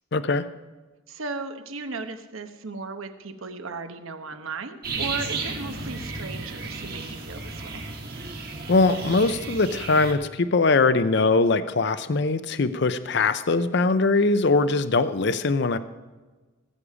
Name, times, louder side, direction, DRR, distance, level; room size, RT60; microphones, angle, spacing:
voice 1, 0.1-0.4 8.7-15.8, left 3 dB, 55° left, 12 dB, 0.5 m, -21 dB
voice 2, 1.1-7.9, right 3 dB, 75° right, 8 dB, 1.1 m, -36 dB
sound 1, 4.8-10.1, right 3 dB, 45° right, 2.0 m, -34 dB
19.0 x 8.4 x 4.9 m, 1.2 s
head